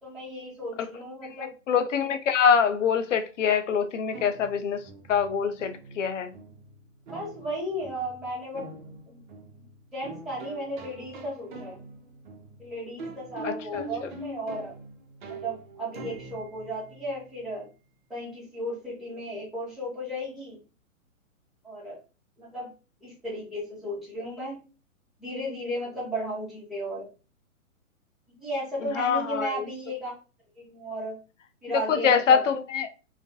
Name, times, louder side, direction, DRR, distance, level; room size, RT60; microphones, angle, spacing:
voice 1, 0.0-1.5 7.1-8.7 9.1-9.2 9.6-9.7 9.9-11.8 12.6-14.7 15.3-17.7 18.1-20.6 21.6-22.0 22.4-22.7 23.0-24.6 25.2-27.1 28.3-30.1 30.6-31.2 31.6-32.4, equal, ahead, 0.7 m, -34 dB
voice 2, 1.7-4.8 5.1-6.3 13.4-13.8 29.0-29.7 31.7-32.9, left 7 dB, 65° left, 0.5 m, -24 dB
sound 1, 4.1-17.7, right 2 dB, 35° right, 0.5 m, -44 dB
2.3 x 2.1 x 2.6 m
figure-of-eight pair, 125°, 42 cm